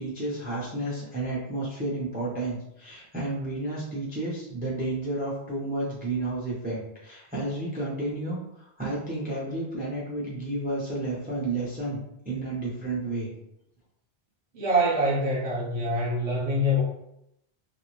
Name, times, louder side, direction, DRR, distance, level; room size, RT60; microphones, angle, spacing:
voice 1, 0.0-13.3, right 2 dB, 15° right, -6 dB, 0.4 m, -31 dB
voice 2, 14.5-16.8, equal, 35° right, -4 dB, 0.8 m, -25 dB
2.5 x 2.0 x 3.0 m, 0.80 s
omnidirectional pair, 1.1 m